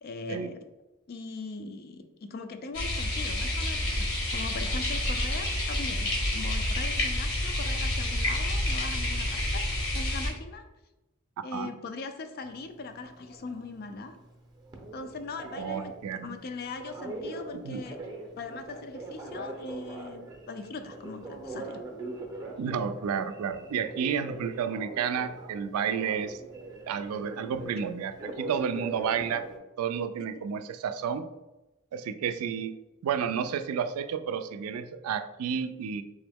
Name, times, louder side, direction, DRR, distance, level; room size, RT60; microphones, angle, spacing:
voice 1, 0.0-0.6 1.1-9.6 9.9-10.6 11.4-14.2 14.9-18.0 18.4-21.8 28.3-28.4, left 3 dB, 45° left, 8 dB, 0.4 m, -40 dB
sound 1, 2.7-10.3, left 1 dB, 80° left, 1.3 m, -29 dB
Telephone, 12.4-29.6, right 2 dB, 20° right, 0.6 m, -42 dB
voice 2, 15.6-16.3 17.6-17.8 22.6-26.4 26.9-29.5 29.8-31.3 31.9-32.8 33.0-36.0, right 7 dB, 85° right, 10 dB, 0.3 m, -31 dB
3.6 x 3.0 x 3.4 m, 1.0 s
head